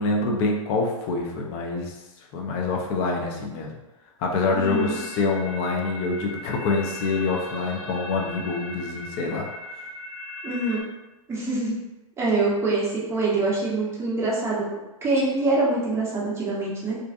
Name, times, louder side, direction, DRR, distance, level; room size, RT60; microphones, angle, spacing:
voice 1, 0.0-1.9 2.3-3.7 4.2-9.5, left 3 dB, 35° left, 1 dB, 0.5 m, -26 dB
voice 2, 4.5-5.0 10.4-10.8 11.3-11.8 12.2-14.7 15.0-17.0, right 2 dB, 15° right, -6 dB, 0.8 m, -24 dB
sound 1, 4.6-10.8, left 2 dB, 60° left, 0.8 m, -38 dB
2.5 x 2.4 x 2.4 m, 1.0 s
figure-of-eight pair, 105°, 18 cm